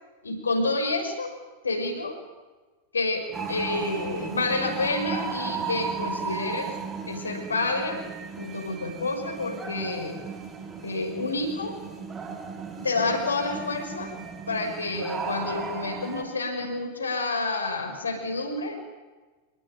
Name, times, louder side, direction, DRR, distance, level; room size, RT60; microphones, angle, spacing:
voice 1, 0.2-1.3 1.6-2.2 2.9-6.8 7.1-8.0 8.4-10.2 10.8-11.8 12.8-14.1 14.5-18.8, left 3 dB, 75° left, 4 dB, 5.9 m, -29 dB
sound 1, 3.3-16.2, right 5 dB, 20° right, 5.3 m, -35 dB
28.0 x 20.0 x 9.2 m, 1.3 s
figure-of-eight pair, 90°, 0 cm